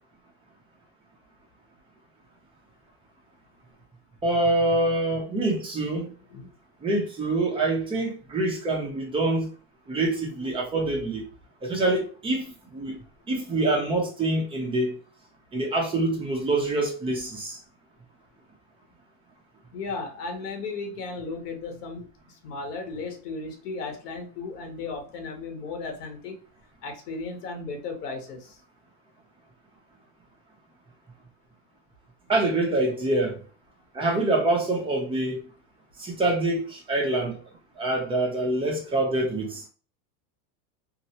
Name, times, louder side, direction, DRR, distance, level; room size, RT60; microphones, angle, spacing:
voice 1, 4.2-6.1 6.8-9.5 9.9-11.2 11.6-13.0 13.3-15.0 15.5-17.6 32.3-33.4 33.9-35.4 36.0-37.4 37.8-39.6, right 2 dB, 10° right, 0.6 m, -25 dB
voice 2, 19.7-26.4 26.8-28.6, left 3 dB, 90° left, 1.0 m, -35 dB
2.9 x 2.0 x 2.7 m
supercardioid pair, 140°, 46 cm